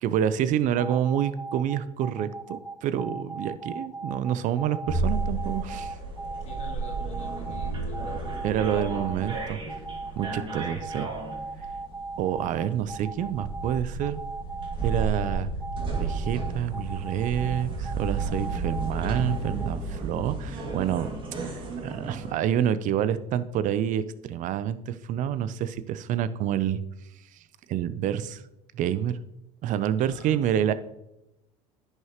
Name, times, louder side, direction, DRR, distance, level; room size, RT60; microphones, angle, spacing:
voice 1, 0.0-5.9 8.4-9.6 10.2-11.1 12.2-14.2 14.8-15.5 15.9-21.1 21.4-26.8 27.7-28.4 28.7-29.2 29.6-30.7, right 10 dB, 55° right, 14 dB, 0.6 m, -28 dB
sound 1, 0.8-19.7, right 3 dB, 10° left, 3.5 m, -37 dB
sound 2, 4.9-22.3, right 3 dB, 30° right, 2.2 m, -33 dB
voice 2, 6.3-8.4 29.8-30.3, left 2 dB, 45° left, -1 dB, 2.7 m, -44 dB
10.5 x 6.5 x 3.0 m, 0.87 s
supercardioid pair, 90°, 16 cm